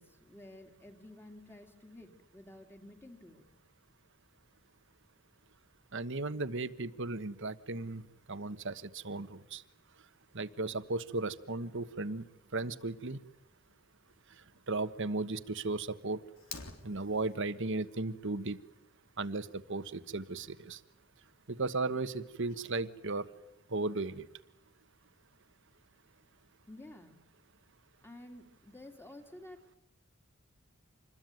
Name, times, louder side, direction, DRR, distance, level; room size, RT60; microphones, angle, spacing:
voice 1, 0.0-3.5 26.7-27.2 28.0-29.6, left 1 dB, 10° left, 4 dB, 3.1 m, -52 dB
voice 2, 5.9-8.0 8.3-9.6 10.3-12.2 12.5-13.2 14.7-16.2 16.8-18.6 19.2-20.8 21.5-23.3 23.7-24.3, right 3 dB, 60° right, 12 dB, 1.3 m, -35 dB
Fire, 16.4-17.4, left 5 dB, 75° left, 3.5 m, -46 dB
27.0 x 21.0 x 9.4 m, 0.87 s
head